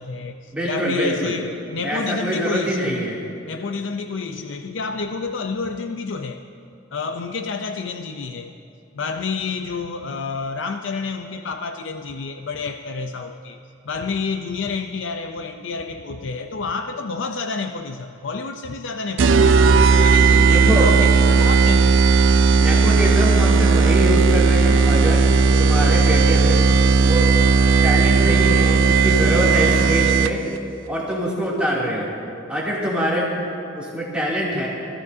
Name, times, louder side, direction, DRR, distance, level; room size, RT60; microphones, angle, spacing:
voice 1, 0.0-3.1 3.5-6.4 6.9-8.5 8.9-19.5 20.0-22.1, left 4 dB, 70° left, 6 dB, 0.6 m, -29 dB
voice 2, 0.5-1.3 1.8-3.1 20.5-20.9 22.5-25.3 25.6-26.6 27.0-27.4 27.8-30.4 30.9-32.1 32.5-33.3 33.7-34.7, equal, 5° right, -7 dB, 2.7 m, -24 dB
sound 1, 19.2-30.6, right 4 dB, 70° right, 0.5 m, -15 dB
25.0 x 15.5 x 2.7 m, 2.7 s
head